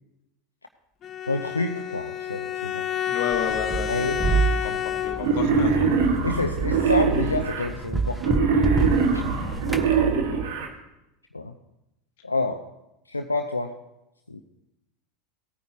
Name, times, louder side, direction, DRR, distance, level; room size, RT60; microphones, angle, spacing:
Bowed string instrument, 1.0-5.5, left 10 dB, 35° left, 0.7 m, -29 dB
voice 1, 1.3-2.9 3.9-4.2 6.2-8.4 9.1-9.2 11.3-11.5 12.2-12.6 13.1-13.7 14.3-14.4, left 3 dB, 85° left, 4 dB, 0.6 m, -28 dB
voice 2, 3.1-6.2 9.3-9.6, left 7 dB, 60° left, 7 dB, 1.4 m, -33 dB
sound 1, 3.3-9.9, right 4 dB, 10° right, 1.0 m, -28 dB
Wild animals, 5.2-7.7 8.2-10.7, right 5 dB, 65° right, 1.7 m, -22 dB
18.0 x 9.3 x 2.9 m, 0.89 s
figure-of-eight pair, 80°, 0 cm